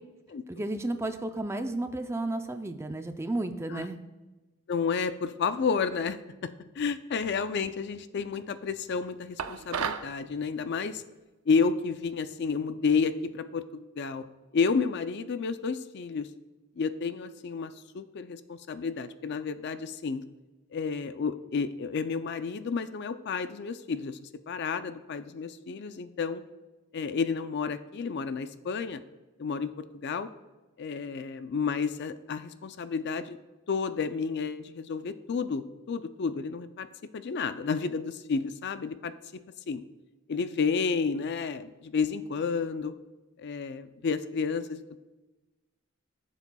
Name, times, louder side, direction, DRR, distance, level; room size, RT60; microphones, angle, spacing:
voice 1, 0.5-4.0, right 2 dB, 15° right, 8 dB, 0.4 m, -32 dB
voice 2, 4.7-11.0 11.5-14.3 14.5-16.3 16.8-20.2 20.7-24.2 24.5-26.4 26.9-29.0 29.4-29.7 30.0-30.3 30.8-33.4 33.7-36.9 37.1-39.1 39.7-39.8 40.3-42.9 43.4-45.0, left 5 dB, 50° left, 12 dB, 0.4 m, -31 dB
sound 1, 9.4-10.1, right 7 dB, 85° right, 0.5 m, -32 dB
15.0 x 7.1 x 2.3 m, 1.2 s
head